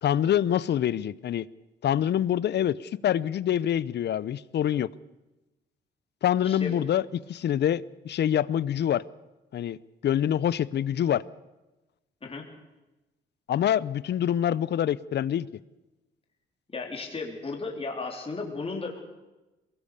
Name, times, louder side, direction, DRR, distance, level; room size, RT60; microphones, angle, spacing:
voice 1, 0.0-1.5 1.8-4.9 6.2-7.0 7.3-9.0 9.5-11.2 13.5-15.5, left 10 dB, 60° left, 20 dB, 0.7 m, -25 dB
voice 2, 6.4-6.8 12.2-12.5 16.7-19.0, left 3 dB, 30° left, 1 dB, 3.9 m, -35 dB
23.0 x 19.0 x 6.8 m, 1.1 s
cardioid pair, 90°, 20 cm